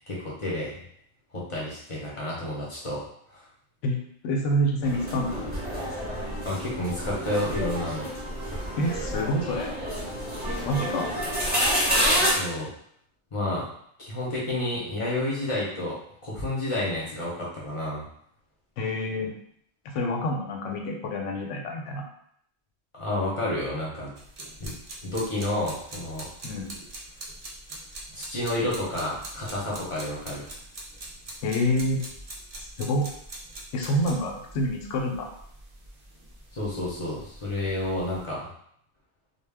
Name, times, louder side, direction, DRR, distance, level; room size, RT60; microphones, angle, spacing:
voice 1, 0.1-0.8 1.3-3.0 3.3-3.4 6.4-8.1 12.4-12.7 13.3-13.7 14.0-16.0 16.2-18.1 22.9-24.1 24.6-24.8 25.0-26.3 28.1-30.5 36.5-38.5, left 1 dB, 35° left, -6 dB, 0.5 m, -30 dB
voice 2, 4.2-5.4 8.8-9.8 10.6-11.1 18.8-19.3 19.8-22.1 26.4-26.7 31.4-32.0 32.6-33.1 33.7-35.3, equal, 90° left, 1 dB, 0.9 m, -27 dB
sound 1, 4.8-12.4, equal, 10° right, 0.7 m, -28 dB
sound 2, 24.2-38.2, right 1 dB, 50° right, 0.4 m, -43 dB
2.2 x 2.1 x 3.3 m, 0.69 s
omnidirectional pair, 1.2 m